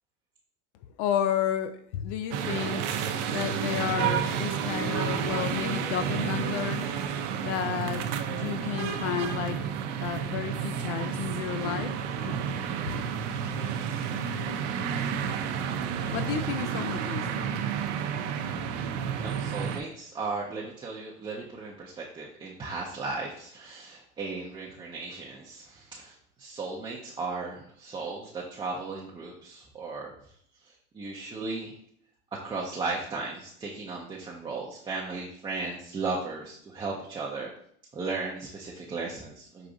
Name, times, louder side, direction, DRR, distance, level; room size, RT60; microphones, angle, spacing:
voice 1, 1.0-2.9 3.3-6.9 7.4-8.0 8.3-9.6 10.0-11.9 12.2-12.5 16.1-17.3, left 9 dB, 80° left, 10 dB, 0.5 m, -31 dB
sound 1, 2.3-19.8, right 7 dB, 85° right, 0.6 m, -31 dB
voice 2, 19.2-26.1 26.4-30.1 30.9-31.7 32.3-37.5 37.9-39.7, right 3 dB, 15° right, -4 dB, 0.4 m, -36 dB
4.9 x 2.5 x 3.7 m, 0.65 s
supercardioid pair, 135°, 35 cm